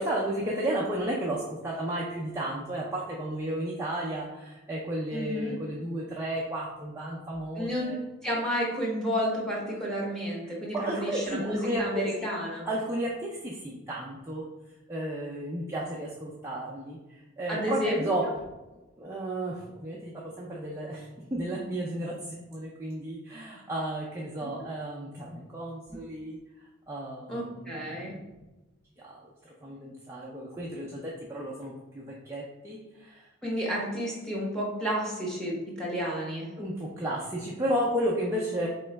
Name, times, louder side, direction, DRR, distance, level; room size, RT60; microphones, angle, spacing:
voice 1, 0.0-8.0 10.5-12.3 12.7-14.4 14.9-18.4 19.0-26.4 26.9-28.3 29.0-33.3 36.6-38.7, right 1 dB, 10° right, -5 dB, 0.4 m, -33 dB
voice 2, 5.1-5.6 7.6-7.9 8.2-12.7 17.5-18.1 27.3-28.1 33.4-36.5, equal, 5° left, -5 dB, 0.9 m, -31 dB
3.7 x 3.0 x 3.3 m, 1.1 s
head